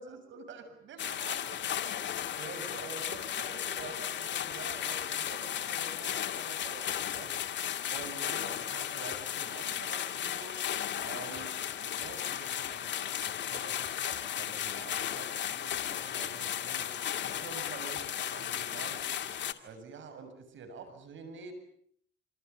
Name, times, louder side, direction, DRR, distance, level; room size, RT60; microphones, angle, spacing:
voice 1, 0.0-7.3 7.9-10.6 11.0-19.0 19.6-21.5, right 4 dB, 70° right, 8 dB, 7.5 m, -47 dB
sound 1, 1.0-19.5, left 10 dB, 65° left, 2.3 m, -35 dB
27.5 x 27.5 x 7.2 m, 0.64 s
cardioid pair, 90°, 20 cm